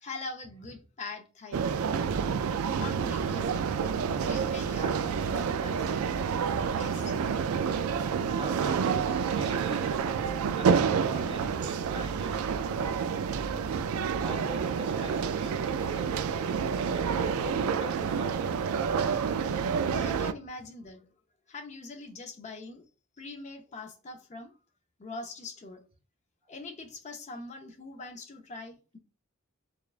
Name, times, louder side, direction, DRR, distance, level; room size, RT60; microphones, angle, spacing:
voice 1, 0.0-1.7 2.8-3.6 4.1-5.9 6.8-7.2 19.9-21.1 21.5-22.8 23.2-24.6 25.0-25.8 26.5-29.0, left 3 dB, 35° left, 0.5 m, -42 dB
sound 1, 1.5-20.3, right 6 dB, 75° right, 0.3 m, -29 dB
voice 2, 8.2-10.1 10.5-12.5 14.2-16.3 16.8-18.6, right 1 dB, 25° right, 0.7 m, -43 dB
6.6 x 2.2 x 2.4 m
head